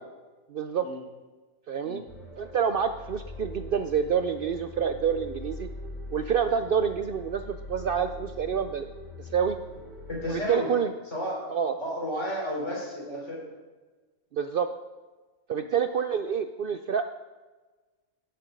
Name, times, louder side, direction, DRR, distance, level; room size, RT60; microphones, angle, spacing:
voice 1, 0.5-0.9 1.7-2.0 2.4-5.7 6.1-8.9 9.2-9.6 10.3-10.9 11.5-11.7 14.3-14.7 15.5-17.1, right 7 dB, 70° right, 9 dB, 0.5 m, -27 dB
sound 1, 2.1-10.4, equal, ahead, 3.5 m, -42 dB
voice 2, 10.1-10.7 11.1-11.5 11.8-13.5 15.5-15.6, equal, 55° left, -3 dB, 4.0 m, -32 dB
17.0 x 6.9 x 5.1 m, 1.3 s
omnidirectional pair, 1.4 m